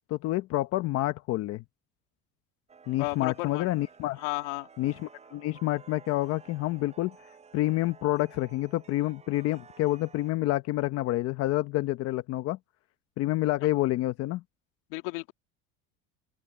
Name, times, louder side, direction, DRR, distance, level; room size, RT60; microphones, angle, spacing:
voice 1, 0.1-1.6 2.9-4.2 4.8-7.1 7.5-12.6 13.2-14.4, left 16 dB, 50° left, 1.0 m, -28 dB
Chime, 2.7-10.3, right 5 dB, 20° right, 7.7 m, -54 dB
voice 2, 3.0-3.7 4.2-4.7 14.9-15.3, left 25 dB, 80° left, 2.6 m, -33 dB
open air
cardioid pair, 135°, 30 cm